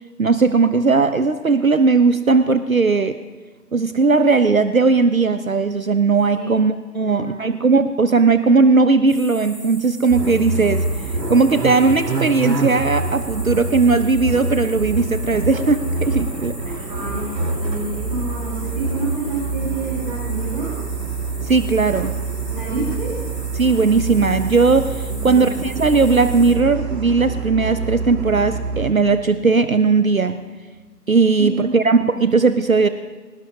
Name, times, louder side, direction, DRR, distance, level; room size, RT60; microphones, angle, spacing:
voice 1, 0.2-3.2 3.7-10.9 11.3-16.7 21.4-22.1 23.5-30.4 31.1-32.9, right 4 dB, 55° right, 11 dB, 0.7 m, -17 dB
voice 2, 6.9-7.4 16.9-20.7 22.5-23.1 25.1-25.5 31.4-31.8, right 2 dB, 30° right, -6 dB, 3.8 m, -29 dB
sound 1, 9.1-26.5, equal, ahead, 1.7 m, -39 dB
sound 2, 10.1-28.9, right 3 dB, 80° right, 1.9 m, -26 dB
25.0 x 18.0 x 2.8 m, 1.3 s
figure-of-eight pair, 165°, 50 cm